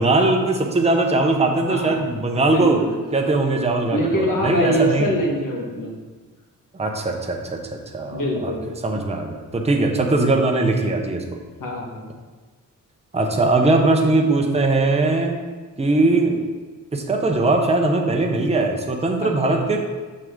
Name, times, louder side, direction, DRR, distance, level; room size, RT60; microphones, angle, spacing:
voice 1, 0.0-2.8 3.1-5.1 6.7-8.5 8.8-11.4 13.1-15.4 15.8-16.5 16.9-19.8, right 2 dB, 20° right, 2 dB, 0.8 m, -20 dB
voice 2, 1.6-2.0 2.5-3.0 3.9-6.0 8.1-8.7 11.6-12.1 19.2-19.6, equal, 65° left, -1 dB, 1.5 m, -24 dB
6.7 x 6.0 x 3.7 m, 1.4 s
wide cardioid pair, 120°, 35 cm